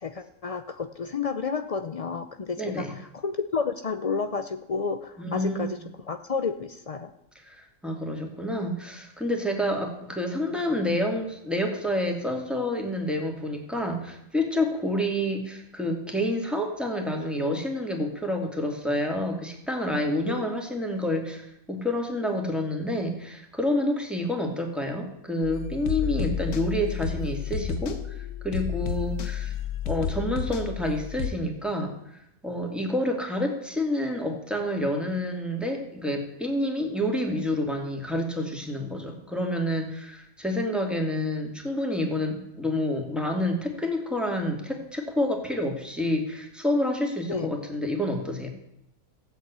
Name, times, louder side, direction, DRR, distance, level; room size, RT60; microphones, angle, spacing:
voice 1, 0.0-5.8 6.1-7.1 20.3-20.5 47.3-47.5, left 5 dB, 60° left, 9 dB, 0.3 m, -31 dB
voice 2, 2.6-2.9 5.2-5.8 7.3-29.5 29.8-32.2 32.4-48.5, left 1 dB, ahead, 2 dB, 2.3 m, -28 dB
sound 1, 25.4-31.3, left 9 dB, 85° left, 1.6 m, -31 dB
15.5 x 8.3 x 8.1 m, 0.80 s
omnidirectional pair, 1.6 m